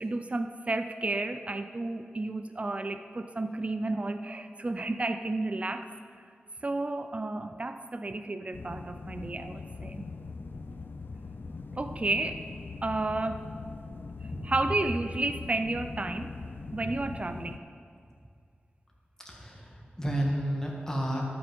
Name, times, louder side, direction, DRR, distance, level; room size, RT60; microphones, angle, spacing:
voice 1, 0.0-5.9 6.6-10.0 11.7-12.4 12.8-13.5 14.5-16.3 16.7-17.6, right 2 dB, 35° right, 9 dB, 0.4 m, -32 dB
sound 1, 8.5-17.6, left 4 dB, 65° left, 0.5 m, -42 dB
voice 2, 14.3-14.8 16.4-16.5 17.1-17.2 19.2-21.2, equal, 15° left, -2 dB, 1.8 m, -32 dB
12.0 x 5.9 x 5.3 m, 2.2 s
wide cardioid pair, 70°, 4 cm